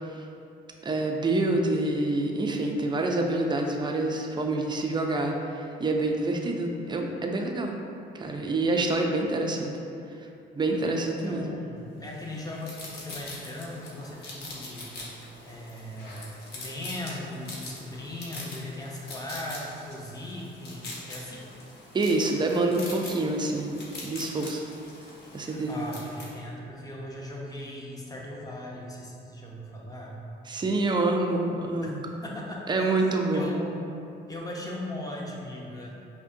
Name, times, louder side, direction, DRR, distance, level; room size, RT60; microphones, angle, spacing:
voice 1, 0.8-7.8 8.1-9.7 10.5-11.5 21.9-23.8 24.0-24.6 25.3-25.8 30.5-32.0 32.7-33.5, right 2 dB, 25° right, 2 dB, 0.4 m, -27 dB
voice 2, 11.1-21.4 25.4-30.2 31.8-31.9 32.2-32.9 33.3-33.7 34.3-36.0, left 1 dB, 20° left, -3 dB, 0.7 m, -38 dB
sound 1, 12.1-26.3, left 2 dB, 55° left, 0.9 m, -43 dB
5.2 x 2.1 x 2.6 m, 2.7 s
cardioid pair, 90°, 20 cm